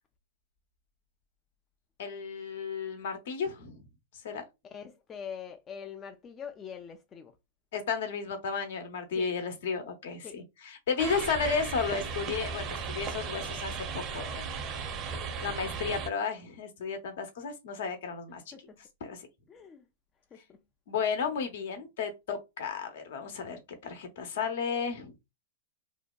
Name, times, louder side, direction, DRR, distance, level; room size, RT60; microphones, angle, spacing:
voice 1, 2.0-3.8 4.2-4.4 7.7-14.5 15.4-18.5 19.0-19.3 20.9-25.1, left 5 dB, 65° left, 0.7 m, -33 dB
voice 2, 4.6-7.3 9.1-9.3 10.2-10.4 18.5-18.8 19.5-19.8 20.3-20.6, left 7 dB, 25° left, 0.3 m, -44 dB
sound 1, 11.0-16.1, right 5 dB, 35° right, 0.6 m, -36 dB
2.7 x 2.1 x 2.3 m
hypercardioid pair, 115°, 0 cm